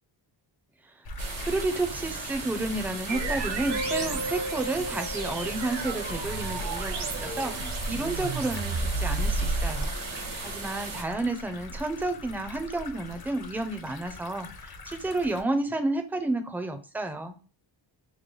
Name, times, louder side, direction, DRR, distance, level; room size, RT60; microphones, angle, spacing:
sound 1, 1.0-15.4, equal, 50° left, 0.6 m, -37 dB
sound 2, 1.2-11.0, right 4 dB, 85° right, 1.2 m, -37 dB
voice 1, 1.4-9.9 10.4-17.3, right 2 dB, 5° right, 7 dB, 0.4 m, -31 dB
sound 3, 3.1-10.3, right 4 dB, 60° right, 0.8 m, -34 dB
3.1 x 2.2 x 3.6 m, 0.38 s
wide cardioid pair, 135°, 47 cm